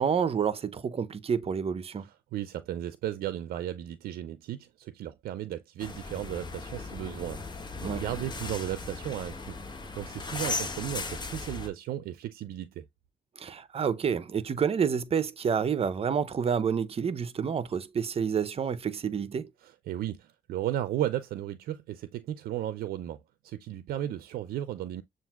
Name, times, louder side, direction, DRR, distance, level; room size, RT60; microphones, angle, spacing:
voice 1, 0.0-2.1 7.8-8.0 13.4-19.5, right 7 dB, 40° right, 0.6 m, -29 dB
voice 2, 2.0-9.6 10.0-12.8 19.6-23.2 23.4-25.0, right 12 dB, 80° right, 0.5 m, -35 dB
sound 1, 5.8-11.7, left 3 dB, 30° left, 1.2 m, -37 dB
7.0 x 2.5 x 2.3 m
cardioid pair, 80°, 15 cm